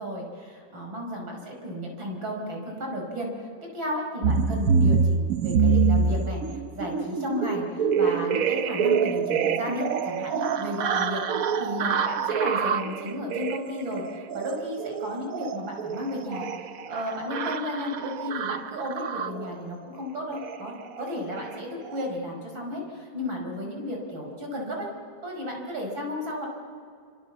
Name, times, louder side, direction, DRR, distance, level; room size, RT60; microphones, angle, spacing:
voice 1, 0.0-3.3 3.7-16.5 16.9-24.9 25.2-26.5, left 1 dB, 80° right, 1 dB, 6.1 m, -33 dB
sound 1, 4.2-19.6 20.3-20.6 20.9-21.1 21.4-21.5 21.8-22.1, right 5 dB, 55° right, 1.1 m, -26 dB
26.5 x 26.0 x 7.3 m, 2.3 s
omnidirectional pair, 2.1 m